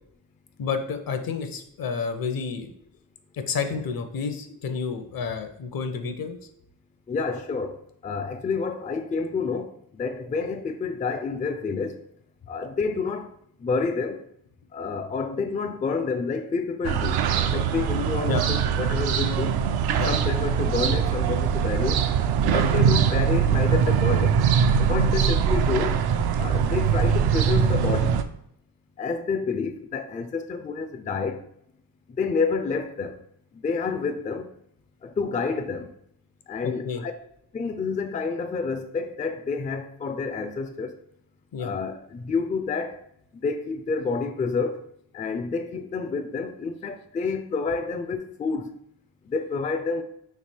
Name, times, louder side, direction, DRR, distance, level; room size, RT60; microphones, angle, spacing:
voice 1, 0.6-2.7 3.3-6.4 18.3-18.4 20.0-20.1 22.4-22.7 36.6-37.0 41.5-41.7, left 5 dB, 60° left, 0.8 m, -30 dB
voice 2, 7.1-7.8 8.0-12.0 12.5-13.3 13.6-14.2 14.7-17.2 17.5-19.6 20.1-22.0 22.4-24.4 24.8-26.0 26.4-28.2 29.0-31.5 32.1-33.2 33.5-34.5 35.0-35.9 36.5-37.1 37.5-41.0 41.6-43.0 43.4-44.8 45.1-48.7 49.2-50.0, left 4 dB, 20° left, 0.4 m, -29 dB
sound 1, 16.8-28.2, right 7 dB, 65° right, 0.5 m, -22 dB
3.3 x 2.8 x 4.3 m
supercardioid pair, 55°, 40 cm